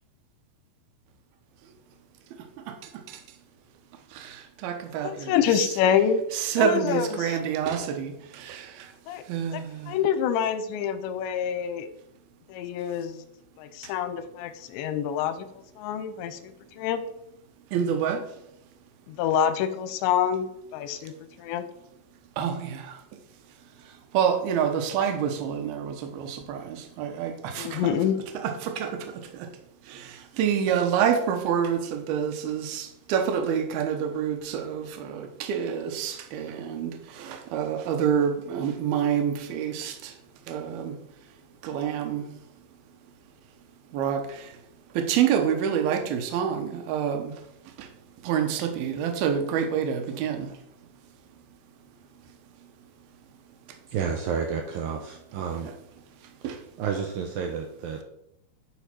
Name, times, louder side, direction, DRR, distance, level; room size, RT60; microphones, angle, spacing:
voice 1, 2.7-3.2 4.1-5.3 6.3-8.9 9.3-10.0 13.8-13.9 17.7-18.3 22.4-23.0 24.1-27.8 28.3-29.5 29.9-40.1 40.5-41.0 41.6-42.3 43.9-44.5 44.9-47.4 47.8-47.9 48.2-50.5 56.4-56.6, right 8 dB, 70° right, 2.6 m, -27 dB
voice 2, 5.0-6.2 6.6-7.4 9.1-9.2 9.5-11.9 12.5-13.2 13.6-15.5 15.8-17.0 19.1-21.7 25.0-25.1 27.6-28.2, left 8 dB, 85° left, 2.9 m, -27 dB
voice 3, 53.9-55.7 56.8-58.0, right 6 dB, 90° right, 2.0 m, -30 dB
10.5 x 5.1 x 4.4 m
omnidirectional pair, 4.9 m